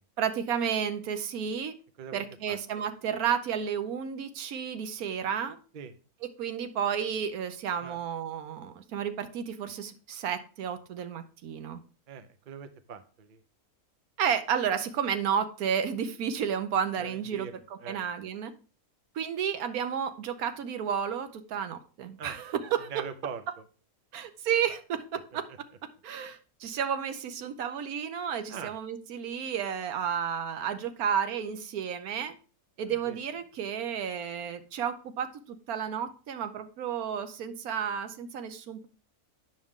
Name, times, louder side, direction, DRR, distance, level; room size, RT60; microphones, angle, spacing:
voice 1, 0.2-1.7 2.1-5.6 6.4-11.8 14.2-18.5 19.1-23.0 24.1-25.4 26.0-32.3 32.8-38.9, right 8 dB, 75° right, 9 dB, 1.2 m, -32 dB
voice 2, 2.0-2.6 5.7-5.9 7.8-8.0 12.1-13.4 17.0-18.0 22.2-22.4 22.9-23.4 28.5-28.7 32.9-33.2, right 6 dB, 60° right, 10 dB, 0.5 m, -42 dB
8.8 x 6.1 x 3.6 m, 0.37 s
omnidirectional pair, 1.6 m